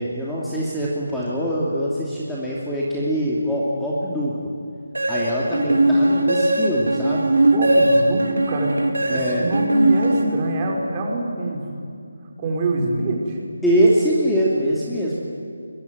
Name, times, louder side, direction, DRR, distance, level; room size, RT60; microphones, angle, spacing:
voice 1, 0.0-4.4 5.1-7.3 9.1-9.4 13.6-15.2, right 1 dB, ahead, -7 dB, 2.8 m, -23 dB
sound 1, 4.9-10.8, right 1 dB, 80° right, 3.9 m, -19 dB
voice 2, 7.4-11.6 12.4-13.4, right 2 dB, 25° right, 1 dB, 4.8 m, -25 dB
23.5 x 22.0 x 9.3 m, 2.4 s
figure-of-eight pair, 155°, 0 cm